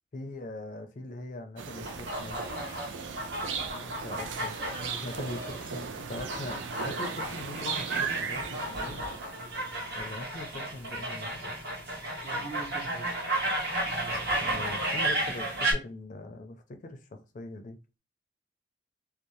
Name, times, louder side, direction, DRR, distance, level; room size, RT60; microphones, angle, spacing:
voice 1, 0.1-2.4 3.7-4.5 5.0-9.1 9.9-11.5 14.4-17.8, left 2 dB, 45° left, 0.4 m, -41 dB
sound 1, 1.6-10.0, right 6 dB, 90° right, 0.4 m, -37 dB
sound 2, 1.8-15.7, right 1 dB, 60° right, 1.0 m, -33 dB
voice 2, 4.7-5.1 5.4-5.5 5.8-5.9 12.1-13.1 13.9-14.8, right 3 dB, 30° right, 0.5 m, -44 dB
2.6 x 2.0 x 3.0 m
head